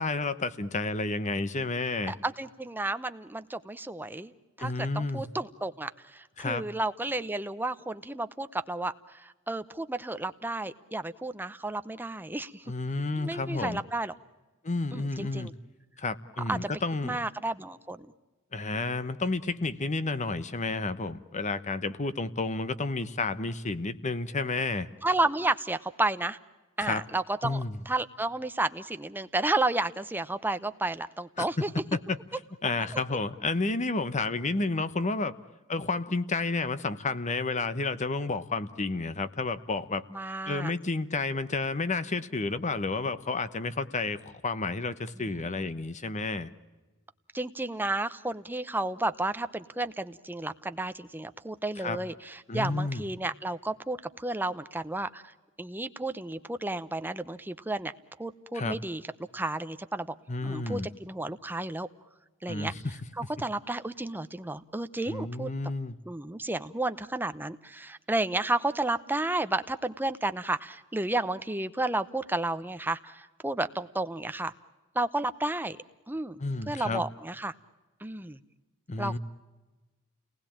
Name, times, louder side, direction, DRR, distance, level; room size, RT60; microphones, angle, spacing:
voice 1, 0.0-2.1 4.6-5.2 6.4-6.6 12.7-13.8 14.6-15.5 16.0-17.2 18.5-24.9 26.8-27.0 27.4-27.8 31.4-31.5 31.9-32.2 32.6-35.3 35.7-40.0 40.5-46.5 51.8-52.0 52.5-53.0 58.5-58.8 60.3-60.9 62.5-62.9 65.1-66.0 76.4-77.0 78.9-79.2, left 3 dB, 35° left, 13 dB, 1.0 m, -31 dB
voice 2, 2.1-4.3 4.6-12.6 13.2-14.1 14.9-15.5 16.5-16.7 17.0-18.1 25.0-26.4 26.8-31.7 32.9-33.0 40.1-40.7 45.2-45.7 47.3-55.2 55.6-57.9 58.2-59.0 59.3-60.1 60.4-61.9 62.4-62.7 63.2-65.5 66.1-74.5 74.9-75.8 76.1-76.4 76.7-77.5 78.0-78.4 79.0-79.2, right 2 dB, 10° right, 11 dB, 0.8 m, -32 dB
29.5 x 19.5 x 8.7 m, 1.2 s
head